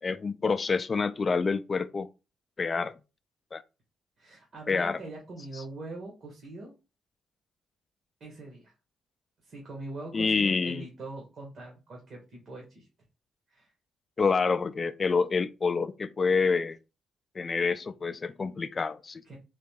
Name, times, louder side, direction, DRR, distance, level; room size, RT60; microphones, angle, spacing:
voice 1, 0.0-2.1 2.6-2.9 3.5-3.6 4.7-5.0 5.5-5.6 10.1-10.9 14.2-16.8 17.4-19.2, left 4 dB, 35° left, 0.3 m, -27 dB
voice 2, 4.2-6.7 8.2-8.7 9.4-12.9 13.5-13.7 19.2-19.4, right 2 dB, 55° right, 1.6 m, -42 dB
4.0 x 2.8 x 3.5 m
cardioid pair, 90°, 0 cm